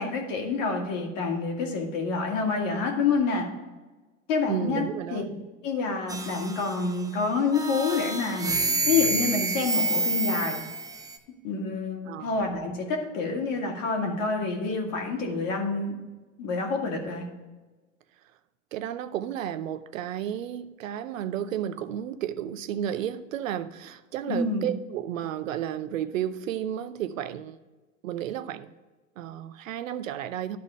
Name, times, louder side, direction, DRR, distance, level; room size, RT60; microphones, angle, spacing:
voice 1, 0.0-3.5 4.3-4.8 5.1-5.2 5.6-8.6 8.9-10.6 11.4-16.0 16.4-17.3 24.3-24.7, left 4 dB, 75° left, 1 dB, 2.1 m, -27 dB
voice 2, 4.5-5.3 12.1-12.4 18.7-27.6 28.0-28.7 29.2-30.6, right 10 dB, 85° right, 14 dB, 0.6 m, -32 dB
sound 1, 6.1-7.0 7.5-11.2, right 3 dB, 10° right, 0.7 m, -28 dB
12.0 x 4.3 x 4.7 m, 1.2 s
hypercardioid pair, 90°, 39 cm